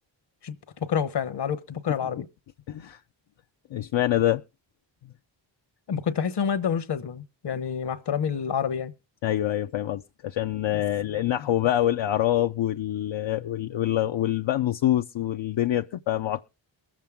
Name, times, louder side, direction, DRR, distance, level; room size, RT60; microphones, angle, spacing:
voice 1, 0.4-2.3 5.9-8.9 10.7-10.8, left 7 dB, 60° left, 1.1 m, -28 dB
voice 2, 2.7-3.0 3.7-4.4 9.2-16.5, left 12 dB, 75° left, 0.6 m, -25 dB
22.0 x 7.5 x 3.5 m
wide cardioid pair, 120°, 45 cm